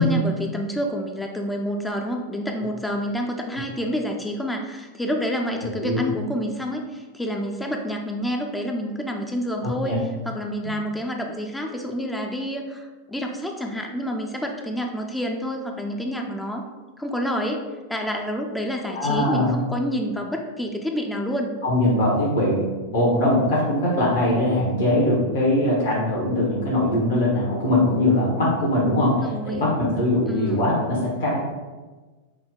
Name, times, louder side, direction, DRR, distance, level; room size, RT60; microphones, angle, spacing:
voice 1, 0.0-16.7 17.0-21.5 29.1-29.7 30.3-30.7, equal, 5° left, 2 dB, 0.4 m, -28 dB
voice 2, 9.6-10.0 18.9-19.5 21.6-22.6 22.9-29.1 29.4-31.4, left 1 dB, 55° left, -4 dB, 1.0 m, -21 dB
5.6 x 2.2 x 3.6 m, 1.3 s
figure-of-eight pair, 90°, 0 cm